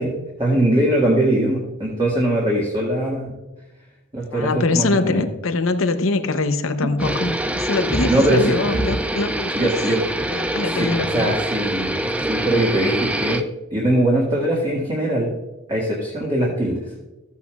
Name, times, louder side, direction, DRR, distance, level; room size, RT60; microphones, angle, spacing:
voice 1, 0.0-3.3 4.1-5.2 8.1-8.6 8.8-8.9 9.5-10.0 10.7-13.4 13.7-15.3 15.7-16.8, right 1 dB, 25° right, -5 dB, 1.8 m, -21 dB
voice 2, 4.3-9.5 10.3-11.4, left 3 dB, 80° left, 9 dB, 0.8 m, -23 dB
sound 1, 7.0-13.4, right 1 dB, 5° right, 0.4 m, -25 dB
14.0 x 8.3 x 2.4 m, 1.1 s
head